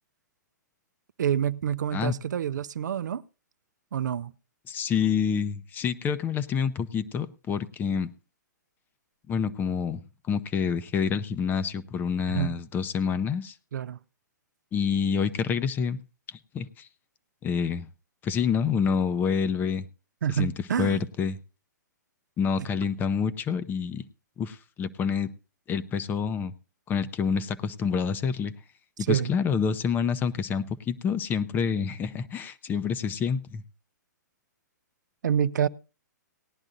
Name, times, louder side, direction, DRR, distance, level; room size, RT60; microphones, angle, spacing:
voice 1, 1.2-3.2 3.9-4.3 12.3-12.5 13.7-14.0 20.2-21.0 29.1-29.3 35.2-35.7, right 9 dB, 70° right, 0.5 m, -27 dB
voice 2, 4.7-8.1 9.3-10.0 10.3-13.5 14.7-16.0 16.3-16.9 17.4-17.9 18.2-19.9 20.3-20.5 20.8-21.4 22.4-24.0 24.4-25.3 25.7-26.5 26.9-28.5 29.0-33.6, left 6 dB, 20° left, 0.6 m, -27 dB
18.5 x 10.5 x 2.6 m
hypercardioid pair, 130°, 10 cm